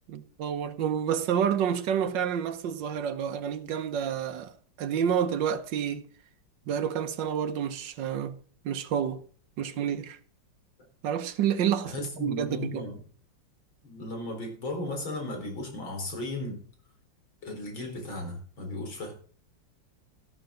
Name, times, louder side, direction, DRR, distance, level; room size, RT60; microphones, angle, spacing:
voice 1, 0.1-6.0 6.7-8.4 8.6-9.2 9.6-10.2 11.0-12.9, right 8 dB, 70° right, 1.7 m, -29 dB
voice 2, 11.8-13.0 13.8-16.6 17.4-19.1, left 2 dB, 90° left, 5.0 m, -36 dB
13.0 x 12.5 x 3.8 m
omnidirectional pair, 2.1 m